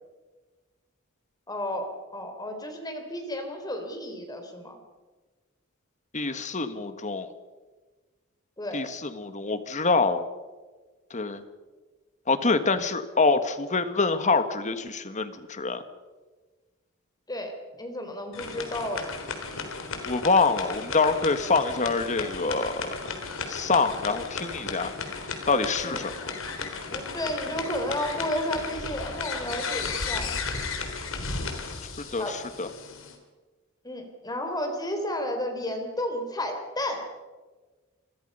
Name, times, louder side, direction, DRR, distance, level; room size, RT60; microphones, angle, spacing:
voice 1, 1.5-4.8 8.6-8.8 17.3-19.2 25.8-26.1 26.9-30.3 32.2-32.4 33.8-37.0, left 1 dB, 20° left, 5 dB, 3.8 m, -32 dB
voice 2, 6.1-7.3 8.7-10.2 11.1-11.4 12.3-15.8 20.1-22.9 23.5-24.9 25.5-26.1 32.1-32.7, left 4 dB, 35° left, 10 dB, 1.6 m, -25 dB
sound 1, 18.3-33.1, left 4 dB, 65° left, 3.6 m, -35 dB
27.0 x 22.5 x 5.6 m, 1.3 s
head